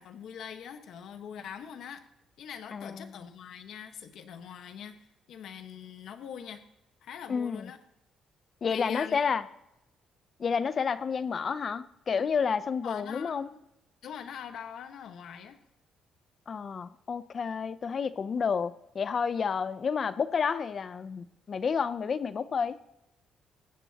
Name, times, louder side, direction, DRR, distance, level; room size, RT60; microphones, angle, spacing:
voice 1, 0.0-2.1 2.4-6.6 7.0-7.8 8.7-9.2 12.8-13.6 14.0-15.6, left 8 dB, 65° left, 7 dB, 1.4 m, -43 dB
voice 2, 2.7-3.0 7.3-7.6 8.6-9.4 10.4-13.5 16.5-22.8, left 6 dB, 35° left, 14 dB, 0.6 m, -30 dB
20.0 x 15.5 x 2.9 m, 0.88 s
cardioid pair, 140°, 0 cm